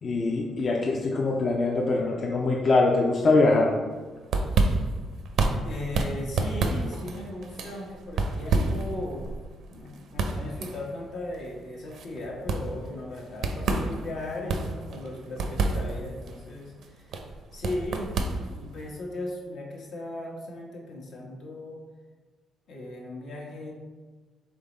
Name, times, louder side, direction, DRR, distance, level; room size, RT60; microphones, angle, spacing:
voice 1, 0.0-3.7, left 3 dB, 50° left, -1 dB, 0.5 m, -23 dB
sound 1, 4.0-18.9, right 3 dB, 70° right, 0.5 m, -30 dB
voice 2, 5.6-9.3 9.7-17.1 17.5-21.8 22.7-23.7, left 1 dB, 75° left, -2 dB, 1.1 m, -37 dB
3.7 x 3.4 x 4.0 m, 1.4 s
cardioid pair, 90°, 0 cm